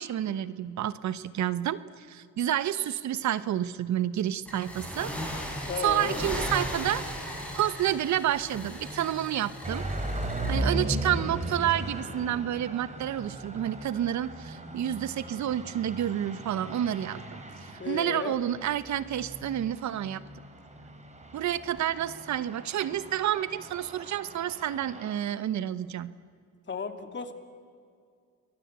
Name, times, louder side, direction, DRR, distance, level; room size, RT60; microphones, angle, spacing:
voice 1, 0.0-5.1 5.8-7.0 7.5-9.8 10.5-17.2 17.6-20.2 21.3-26.1, right 11 dB, 70° right, 15 dB, 1.0 m, -29 dB
sound 1, 4.5-10.7, equal, 5° left, 7.6 m, -37 dB
voice 2, 5.7-6.2 17.8-18.4 26.7-27.3, left 5 dB, 40° left, 7 dB, 2.7 m, -34 dB
sound 2, 9.6-25.1, right 1 dB, 25° right, 4.1 m, -37 dB
28.0 x 22.5 x 8.1 m, 2.3 s
cardioid pair, 90°, 30 cm